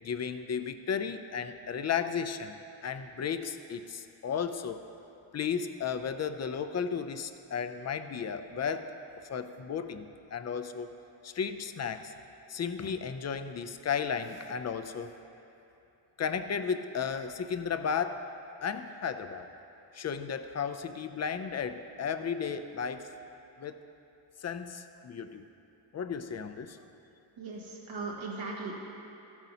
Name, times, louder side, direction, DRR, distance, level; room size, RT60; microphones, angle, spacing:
voice 1, 0.0-2.6 2.8-4.8 5.3-8.9 9.3-10.9 11.2-12.1 12.5-15.1 16.2-18.2 18.6-19.5 19.9-23.1 23.6-23.8 24.4-25.5 25.9-26.8, left 6 dB, 35° left, 9 dB, 0.4 m, -34 dB
voice 2, 27.4-28.7, right 3 dB, 80° right, -3 dB, 1.9 m, -38 dB
15.0 x 9.1 x 2.8 m, 2.9 s
wide cardioid pair, 140°, 46 cm